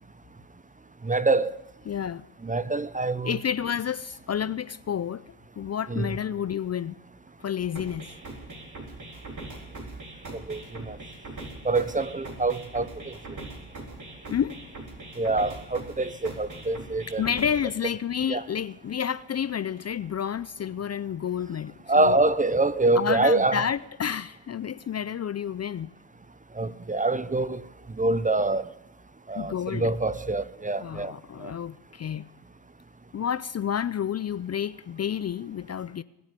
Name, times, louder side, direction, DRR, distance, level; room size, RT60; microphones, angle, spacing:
voice 1, 1.0-1.5 2.4-3.4 5.9-6.2 10.5-10.6 10.9-11.0 11.6-13.1 15.2-17.2 18.3-18.4 21.9-23.6 26.6-27.6 28.0-28.6 29.3-31.1 31.4-31.5, right 2 dB, 20° right, 0.7 m, -25 dB
voice 2, 1.9-2.3 3.2-5.2 5.6-7.0 7.4-8.1 14.3-14.6 17.2-22.2 23.0-25.9 29.4-29.9 30.8-32.3 33.1-36.0, left 8 dB, 35° left, 0.5 m, -30 dB
sound 1, 7.8-17.8, right 2 dB, 40° right, 3.9 m, -42 dB
22.0 x 8.9 x 6.8 m
supercardioid pair, 55°, 44 cm